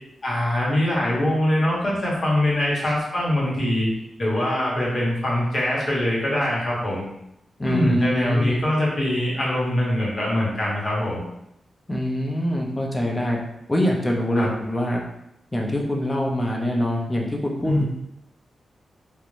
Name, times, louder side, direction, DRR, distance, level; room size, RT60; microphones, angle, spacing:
voice 1, 0.2-3.9 4.2-7.0 7.6-11.2 14.3-14.5 17.7-17.8, left 1 dB, 40° left, -5 dB, 0.8 m, -23 dB
voice 2, 7.6-8.6 11.9-13.4 13.7-15.0 15.5-17.8, equal, 15° left, 0 dB, 0.4 m, -24 dB
2.4 x 2.0 x 3.0 m, 0.82 s
wide cardioid pair, 155°, 0 cm